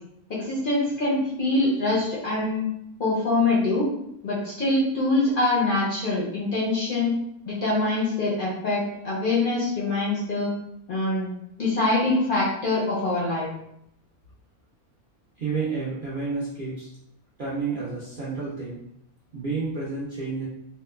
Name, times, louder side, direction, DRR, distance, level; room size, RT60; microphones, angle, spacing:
voice 1, 0.3-2.7 3.0-3.9 4.2-7.1 7.4-10.5 10.9-11.3 11.6-13.5, left 2 dB, 65° left, -6 dB, 0.5 m, -24 dB
voice 2, 15.4-16.9 17.4-18.8 19.3-20.4, right 4 dB, 70° right, -7 dB, 0.5 m, -30 dB
2.9 x 2.2 x 2.2 m, 0.76 s
omnidirectional pair, 1.6 m